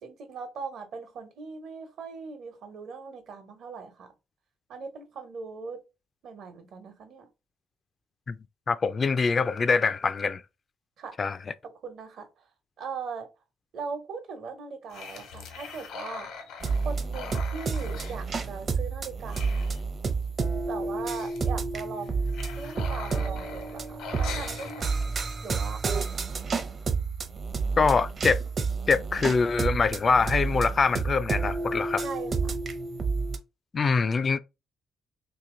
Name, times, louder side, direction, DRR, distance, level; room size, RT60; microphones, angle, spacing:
voice 1, 0.0-4.1 4.7-5.8 6.2-7.3 11.0-11.1 11.6-12.5 12.8-13.3 13.7-16.3 16.8-19.7 20.7-22.3 22.6-26.4 32.0-32.6, right 5 dB, 70° right, 1.1 m, -40 dB
voice 2, 8.7-10.4 11.2-11.4 27.8-28.4 28.9-32.0 33.7-34.4, left 4 dB, 40° left, 0.3 m, -24 dB
sound 1, 14.9-18.9 19.1-20.3 20.5-20.6 20.9-21.5 22.0-25.3, left 5 dB, 85° left, 1.1 m, -42 dB
sound 2, 16.6-33.4, right 4 dB, 45° right, 0.7 m, -30 dB
3.0 x 2.9 x 3.7 m
cardioid pair, 90°, 0 cm